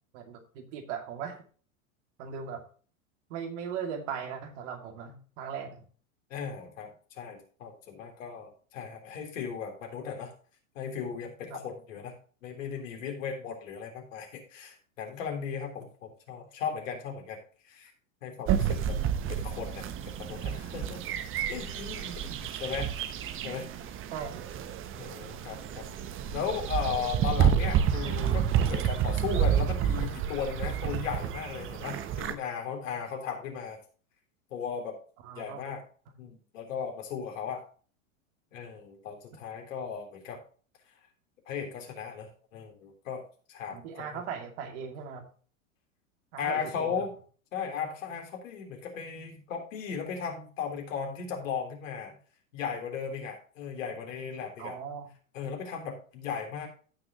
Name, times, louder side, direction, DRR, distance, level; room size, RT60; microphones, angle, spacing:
voice 1, 0.1-1.4 2.2-2.6 3.3-5.9 11.5-11.6 18.8-19.3 22.1-22.4 24.1-24.5 35.2-35.6 43.7-45.3 46.3-47.1 54.6-55.1, right 7 dB, 60° right, 4 dB, 2.4 m, -39 dB
voice 2, 6.3-10.3 10.8-12.1 12.4-17.4 17.6-17.9 18.2-19.0 19.3-21.2 21.5-22.1 22.5-22.9 23.4-23.7 25.0-25.9 26.3-33.8 34.5-35.0 35.3-35.8 36.2-37.6 38.5-40.4 41.5-44.2 46.4-47.1 47.5-52.2 52.5-54.8 55.3-56.7, left 7 dB, 70° left, 2 dB, 3.6 m, -36 dB
sound 1, 18.5-32.3, right 9 dB, 30° right, 0.9 m, -30 dB
15.5 x 6.1 x 3.0 m, 0.41 s
hypercardioid pair, 95°, 41 cm